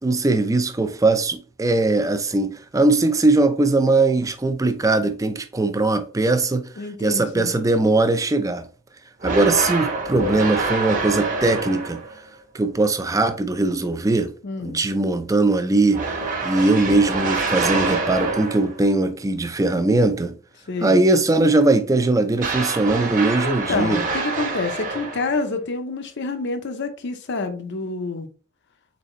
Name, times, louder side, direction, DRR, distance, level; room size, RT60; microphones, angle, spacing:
voice 1, 0.0-6.7 7.0-8.6 9.2-12.0 12.5-14.3 14.6-16.1 16.4-20.3 20.8-24.0, right 2 dB, 15° right, 0.4 m, -20 dB
voice 2, 6.8-7.5 14.4-14.8 20.7-21.0 23.4-28.3, left 3 dB, 55° left, 0.6 m, -28 dB
sound 1, 9.2-12.2 15.9-18.8 22.4-25.5, right 3 dB, 40° right, 1.1 m, -26 dB
4.1 x 3.9 x 3.1 m
head